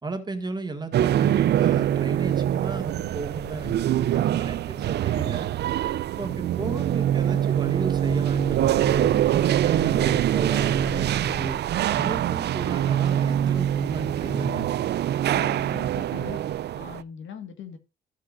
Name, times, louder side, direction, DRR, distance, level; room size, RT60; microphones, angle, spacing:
voice 1, 0.0-3.7 4.0-5.5 6.2-9.1 9.6-11.6 11.9-14.6, right 2 dB, 20° right, 1.9 m, -34 dB
sound 1, 0.9-17.0, right 11 dB, 60° right, 0.4 m, -24 dB
voice 2, 6.5-6.9 15.3-16.4 16.7-17.8, left 8 dB, 75° left, 1.7 m, -40 dB
13.5 x 7.7 x 2.5 m
cardioid pair, 90°, 20 cm